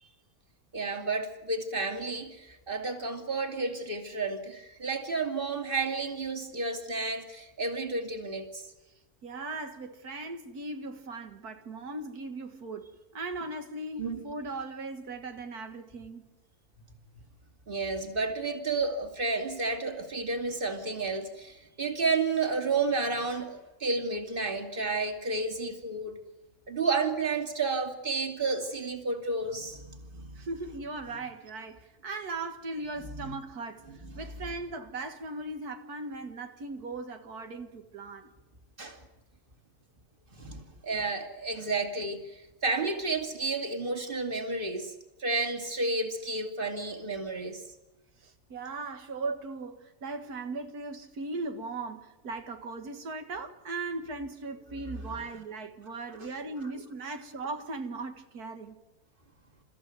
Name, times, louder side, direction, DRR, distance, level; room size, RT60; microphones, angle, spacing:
voice 1, 0.7-8.6 14.0-14.2 17.7-26.2 26.7-30.4 33.2-33.3 38.8-39.0 40.4-44.9 45.2-47.6 55.1-55.2 56.2-56.3, right 3 dB, 35° right, 2.9 m, -31 dB
voice 2, 9.2-16.3 30.4-38.3 48.2-58.8, right 3 dB, 90° right, 2.3 m, -38 dB
30.0 x 14.5 x 9.4 m
omnidirectional pair, 1.6 m